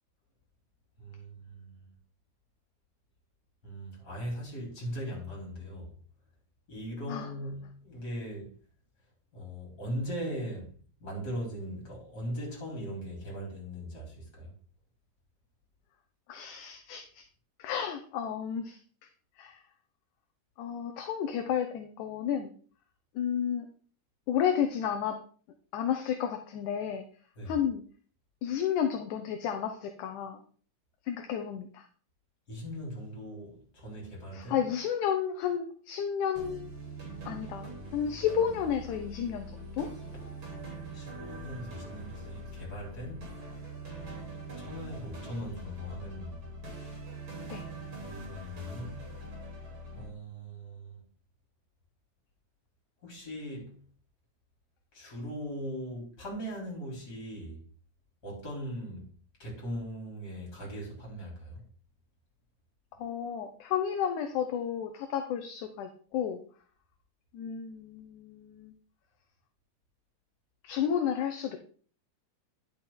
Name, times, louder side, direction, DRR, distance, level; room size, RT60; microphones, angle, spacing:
voice 1, 1.0-1.9 3.6-5.9 6.7-8.6 9.3-14.5 27.4-27.6 32.5-34.7 40.4-40.5 40.9-43.3 44.6-46.4 48.0-49.1 49.9-51.0 53.0-53.8 54.9-57.6 58.2-59.1 59.4-61.6, equal, 30° left, 4.1 m, -39 dB
voice 2, 16.3-17.2 17.6-18.8 19.4-19.6 20.6-22.5 23.2-23.7 24.3-25.2 25.7-27.1 27.5-27.8 28.4-30.4 31.1-31.9 34.3-36.7 37.3-39.9 47.5-47.6 63.0-66.4 67.3-68.7 70.6-71.6, left 8 dB, 75° left, 2.1 m, -32 dB
sound 1, 36.4-50.1, right 2 dB, 40° right, 3.5 m, -43 dB
10.5 x 6.0 x 3.7 m
omnidirectional pair, 3.8 m